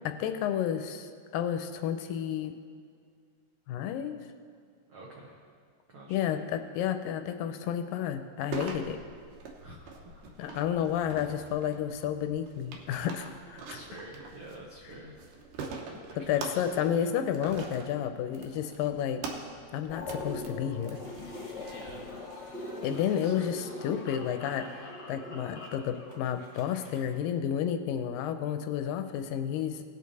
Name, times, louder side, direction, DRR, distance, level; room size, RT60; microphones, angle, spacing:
voice 1, 0.1-2.5 3.7-4.2 6.1-9.0 10.4-13.8 16.2-19.2 19.7-21.0 22.8-29.8, left 9 dB, 80° left, 8 dB, 2.2 m, -31 dB
voice 2, 4.9-5.4 5.9-6.4 9.6-9.8 10.0-10.3 13.6-15.2 16.3-17.1 21.7-22.1 22.8-23.7, right 1 dB, 90° right, -3 dB, 1.1 m, -48 dB
sound 1, 8.5-21.7, right 4 dB, 70° right, 2.5 m, -44 dB
sound 2, 19.9-25.8, left 2 dB, 50° left, 1.3 m, -41 dB
sound 3, 21.0-27.0, left 2 dB, 25° left, 1.1 m, -51 dB
18.5 x 6.6 x 4.1 m, 2.2 s
omnidirectional pair, 4.1 m